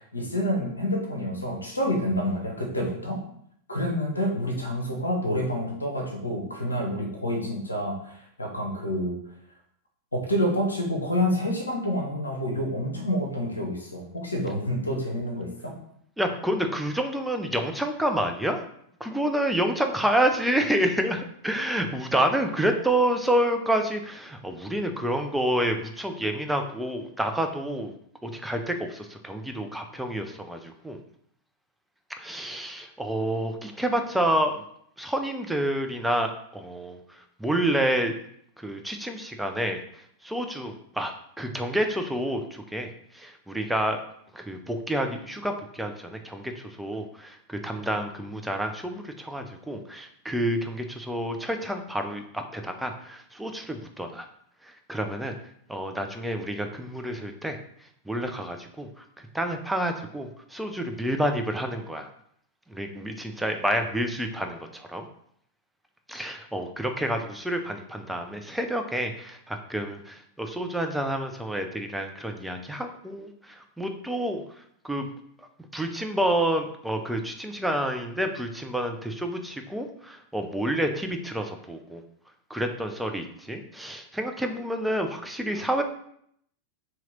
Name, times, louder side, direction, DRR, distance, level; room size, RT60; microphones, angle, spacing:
voice 1, 0.0-3.2 3.7-9.1 10.1-15.7, equal, 80° left, 2 dB, 0.8 m, -28 dB
voice 2, 16.2-18.6 19.0-27.9 28.2-31.0 32.2-34.6 35.0-38.1 38.6-39.8 40.2-44.0 44.3-54.3 54.6-55.3 55.7-57.6 58.1-59.0 59.3-62.1 62.7-65.1 66.1-74.4 74.8-75.1 75.7-82.0 82.5-85.8, right 1 dB, 5° right, 5 dB, 0.4 m, -29 dB
2.9 x 2.8 x 3.8 m, 0.69 s
figure-of-eight pair, 90°, 0 cm